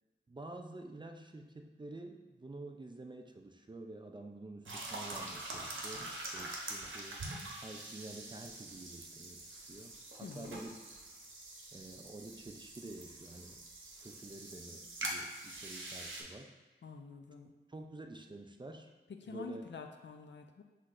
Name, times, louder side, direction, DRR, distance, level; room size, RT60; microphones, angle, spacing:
voice 1, 0.3-7.2 7.6-9.9 10.2-10.8 11.7-13.6 14.0-16.5 17.7-18.9 19.3-19.6, right 2 dB, 25° right, 4 dB, 0.4 m, -49 dB
sound 1, 4.6-16.2, right 2 dB, 90° right, 0.7 m, -45 dB
voice 2, 10.2-10.6 16.8-17.5 19.1-20.6, left 5 dB, 70° left, 4 dB, 0.5 m, -47 dB
5.8 x 3.2 x 2.5 m, 1.2 s
cardioid pair, 55°, 19 cm